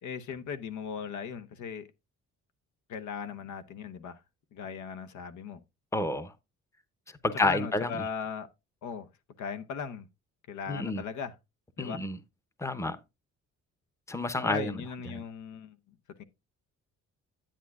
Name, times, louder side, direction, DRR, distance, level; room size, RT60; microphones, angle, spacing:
voice 1, 0.0-1.9 2.9-4.2 4.5-5.6 7.3-8.5 8.8-9.1 9.4-10.1 10.5-11.3 11.8-12.0 14.4-15.8 16.2-16.3, left 6 dB, 75° left, 0.9 m, -38 dB
voice 2, 5.9-6.3 7.2-8.0 10.7-11.0 11.8-12.2 12.6-13.0 14.1-14.8 15.1-15.2, left 2 dB, 10° left, 0.8 m, -29 dB
10.0 x 8.3 x 2.4 m
cardioid pair, 90°, 30 cm